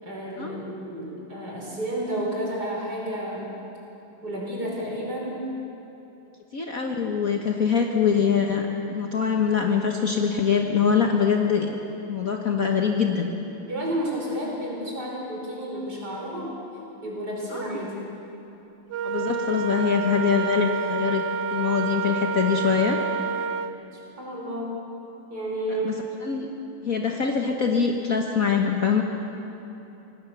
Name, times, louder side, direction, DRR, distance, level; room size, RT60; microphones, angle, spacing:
voice 1, 0.0-3.5 4.2-5.5 13.7-16.5 17.0-17.9 23.9-24.7 25.3-26.0, right 1 dB, 50° right, -3 dB, 5.8 m, -31 dB
voice 2, 6.5-11.8 12.1-13.3 17.5-17.6 19.0-21.3 21.5-23.0 25.8-25.9 26.2-26.5 26.8-29.0, left 6 dB, 45° left, 2 dB, 1.5 m, -23 dB
Wind instrument woodwind instrument, 18.9-23.8, right 5 dB, 65° right, 1.1 m, -28 dB
25.5 x 18.0 x 7.0 m, 2.9 s
omnidirectional pair, 2.3 m